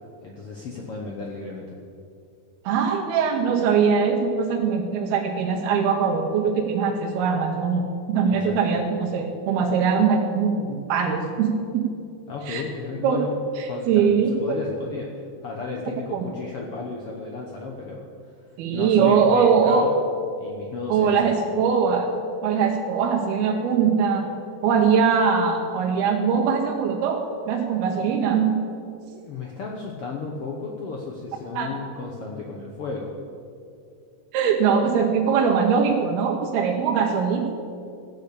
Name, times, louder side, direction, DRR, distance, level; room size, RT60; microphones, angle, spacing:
voice 1, 0.2-1.8 8.3-8.6 12.3-13.4 13.6-14.1 14.4-18.1 18.7-20.0 20.4-21.3 29.1-33.1, left 3 dB, 85° left, -1 dB, 1.2 m, -33 dB
voice 2, 2.7-11.8 12.5-12.6 13.0-13.2 13.6-14.6 16.1-16.2 18.6-19.9 20.9-22.1 22.4-24.3 24.6-28.5 31.6-31.7 34.3-37.5, right 6 dB, 85° right, 2 dB, 3.0 m, -21 dB
15.0 x 6.7 x 8.4 m, 2.4 s
omnidirectional pair, 4.3 m